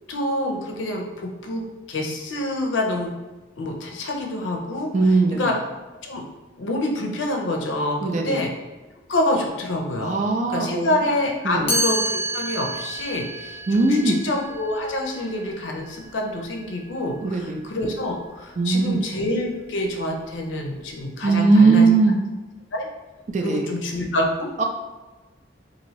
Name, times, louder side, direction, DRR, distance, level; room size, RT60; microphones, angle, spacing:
voice 1, 0.1-1.6 1.9-3.2 3.6-4.9 5.3-5.5 6.0-6.2 6.6-8.5 9.1-10.2 10.5-21.9 22.7-22.9 23.4-24.6, left 1 dB, 80° left, 1 dB, 0.5 m, -26 dB
voice 2, 4.9-5.5 8.0-8.4 10.0-10.9 11.4-11.7 13.7-14.2 17.2-17.6 18.6-19.0 21.2-22.2 23.3-23.7 24.6-24.7, right 3 dB, 40° right, 3 dB, 0.3 m, -19 dB
Chime, 11.7-17.5, right 1 dB, 30° left, 0.5 m, -30 dB
2.8 x 2.6 x 3.0 m, 1.1 s
head